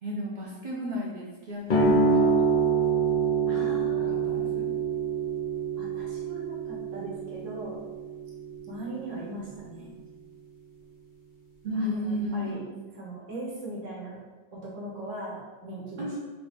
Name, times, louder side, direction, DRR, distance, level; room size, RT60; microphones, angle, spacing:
voice 1, 0.0-2.3 4.2-4.7 9.8-9.9 11.6-12.8 16.0-16.2, equal, 85° right, -4 dB, 0.4 m, -33 dB
sound 1, 1.7-8.8, right 4 dB, 55° left, 0.6 m, -26 dB
voice 2, 3.5-4.4 5.8-7.8 8.7-10.0 11.7-12.6 12.9-14.2 14.5-16.2, right 2 dB, 65° right, -4 dB, 1.1 m, -39 dB
3.1 x 2.6 x 3.4 m, 1.3 s
omnidirectional pair, 1.5 m